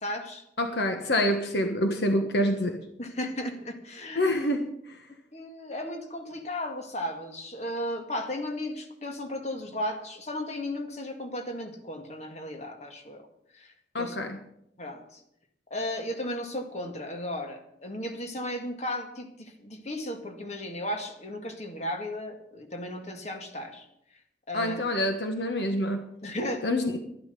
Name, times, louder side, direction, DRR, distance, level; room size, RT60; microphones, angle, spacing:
voice 1, 0.0-0.4 3.0-4.4 5.3-13.2 13.5-14.2 14.8-15.2 15.7-23.9 24.5-24.8 26.2-26.6, left 1 dB, 40° left, 4 dB, 2.0 m, -35 dB
voice 2, 0.6-2.8 4.1-5.0 13.9-14.4 24.5-26.1 26.6-27.0, left 1 dB, 65° left, 5 dB, 1.4 m, -27 dB
12.0 x 12.0 x 6.8 m, 0.76 s
head